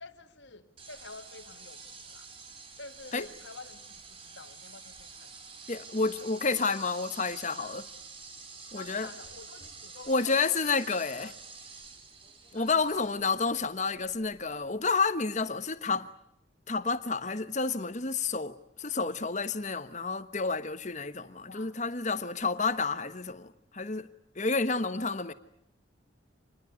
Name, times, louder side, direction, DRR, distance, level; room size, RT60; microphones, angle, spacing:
voice 1, 0.0-2.3 2.8-5.3 8.7-10.8 11.2-11.4 12.5-12.9 21.5-21.8 25.0-25.3, left 3 dB, 70° left, 2.2 m, -49 dB
sound 1, 0.8-14.7, right 4 dB, 30° right, 2.9 m, -48 dB
voice 2, 5.7-7.9 8.7-9.1 10.1-11.3 12.5-16.1 16.7-24.1 24.4-25.3, left 4 dB, 40° left, 1.2 m, -30 dB
27.0 x 20.5 x 9.5 m
head